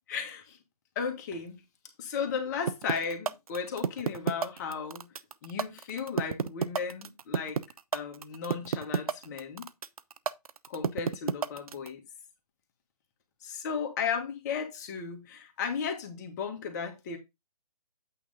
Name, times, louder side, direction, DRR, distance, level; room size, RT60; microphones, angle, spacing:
voice 1, 0.1-0.6 0.9-1.6 2.0-5.1 5.4-7.6 7.9-9.6 10.7-12.0 13.4-17.2, left 6 dB, 25° left, 1.5 m, -35 dB
sound 1, 2.7-11.9, right 6 dB, 65° right, 0.7 m, -29 dB
8.6 x 3.5 x 5.2 m
hypercardioid pair, 155°, 20 cm